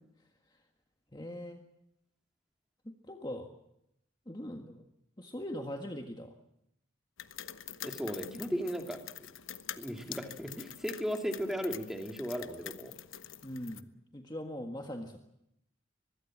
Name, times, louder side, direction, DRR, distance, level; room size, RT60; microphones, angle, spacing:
voice 1, 1.1-1.6 2.9-3.5 4.3-4.8 5.2-6.3 8.3-8.4 13.4-15.2, left 1 dB, 20° left, 3 dB, 1.6 m, -41 dB
sound 1, 7.2-13.8, left 10 dB, 85° left, 1.1 m, -46 dB
voice 2, 7.8-9.0 9.8-12.9, equal, ahead, 3 dB, 2.6 m, -36 dB
24.5 x 21.5 x 7.5 m, 0.80 s
head